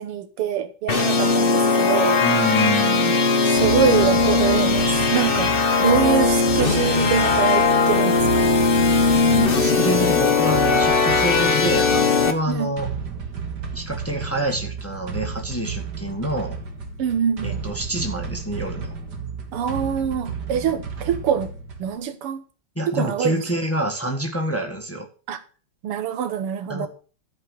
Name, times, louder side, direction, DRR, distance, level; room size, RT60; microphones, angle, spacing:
voice 1, 0.0-2.2 3.4-8.5 12.5-12.7 17.0-17.6 19.5-21.5 21.8-22.4 22.9-23.4 25.3-25.4 25.8-26.9, right 8 dB, 90° right, 2.1 m, -24 dB
sound 1, 0.9-12.3, left 4 dB, 40° left, 0.9 m, -19 dB
voice 2, 2.2-3.2 9.3-12.9 13.7-16.6 17.4-18.9 22.7-25.1 26.7-26.9, right 1 dB, 5° left, 1.5 m, -27 dB
sound 2, 3.6-22.0, right 5 dB, 50° right, 2.2 m, -33 dB
12.5 x 5.4 x 6.7 m
omnidirectional pair, 2.4 m